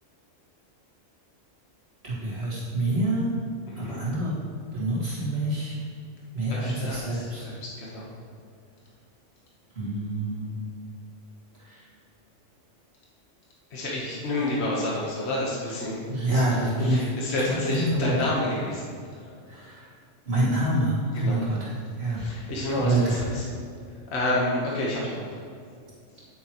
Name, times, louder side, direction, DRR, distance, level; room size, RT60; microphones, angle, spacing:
voice 1, 2.0-3.3 3.8-4.3 4.7-5.8 6.3-7.5 9.8-10.6 11.6-11.9 16.1-17.0 17.4-18.2 19.5-19.9 20.3-21.7 22.0-22.2 22.7-23.5, right 1 dB, 55° right, -8 dB, 2.1 m, -27 dB
voice 2, 3.7-4.0 6.5-8.1 13.7-16.0 16.3-16.5 16.8-18.9 21.1-21.5 22.2-23.4 24.1-25.3, left 1 dB, 60° left, -4 dB, 1.4 m, -29 dB
9.4 x 8.9 x 3.0 m, 2.3 s
omnidirectional pair, 1.3 m